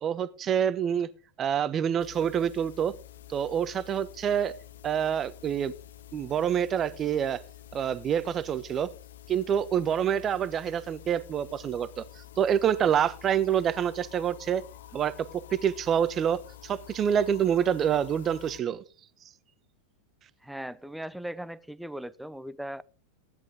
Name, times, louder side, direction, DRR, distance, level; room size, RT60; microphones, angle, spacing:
voice 1, 0.0-1.1 1.4-2.9 3.3-4.5 4.8-5.7 6.1-7.4 7.7-8.9 9.3-14.6 14.9-18.8, right 9 dB, 25° right, 15 dB, 1.1 m, -27 dB
sound 1, 2.0-18.6, left 12 dB, 60° left, 1.2 m, -49 dB
voice 2, 20.4-22.8, right 1 dB, ahead, 17 dB, 0.7 m, -38 dB
16.5 x 10.5 x 3.7 m, 0.35 s
figure-of-eight pair, 90°, 0 cm